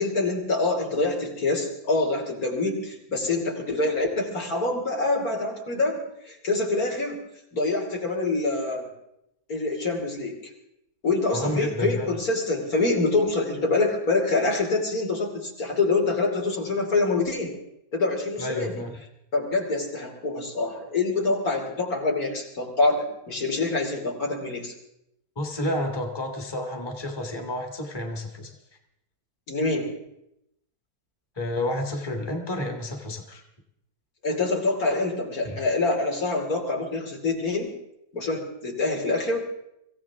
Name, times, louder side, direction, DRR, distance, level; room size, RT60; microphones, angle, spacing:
voice 1, 0.0-7.2 7.5-8.9 9.5-10.5 11.0-17.5 17.9-18.8 19.3-24.7 29.5-29.9 34.2-37.7 38.1-39.4, left 3 dB, 60° left, 0 dB, 3.4 m, -26 dB
voice 2, 11.3-12.1 18.4-18.9 25.4-28.5 31.4-33.4 35.4-35.6, left 1 dB, 15° left, 2 dB, 1.7 m, -30 dB
25.5 x 15.5 x 3.6 m, 0.81 s
omnidirectional pair, 1.7 m